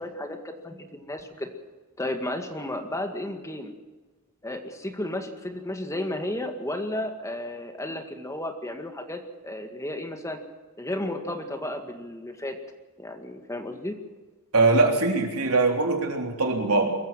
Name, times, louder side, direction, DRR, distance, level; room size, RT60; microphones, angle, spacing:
voice 1, 0.0-1.5 2.0-3.7 4.4-10.4 10.8-12.6 13.0-14.0, left 1 dB, 15° left, 5 dB, 2.0 m, -33 dB
voice 2, 14.5-17.0, right 3 dB, 85° right, 2 dB, 3.5 m, -22 dB
23.0 x 15.0 x 7.6 m, 1.2 s
head